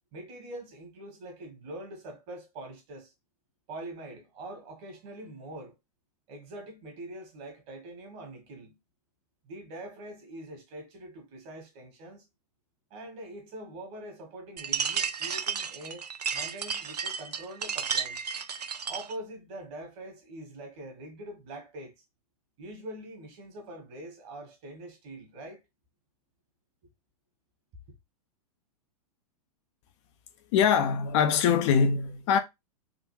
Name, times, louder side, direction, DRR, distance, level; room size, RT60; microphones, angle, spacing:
voice 1, 0.1-3.1 3.7-5.7 6.3-8.7 9.4-12.3 12.9-18.2 18.9-21.9 22.6-25.6, right 1 dB, 45° right, 1.7 m, -44 dB
sound 1, 14.6-19.1, right 6 dB, 90° right, 0.4 m, -32 dB
voice 2, 30.5-32.4, left 7 dB, 50° left, 0.6 m, -23 dB
3.6 x 2.4 x 3.2 m
hypercardioid pair, 110°, 20 cm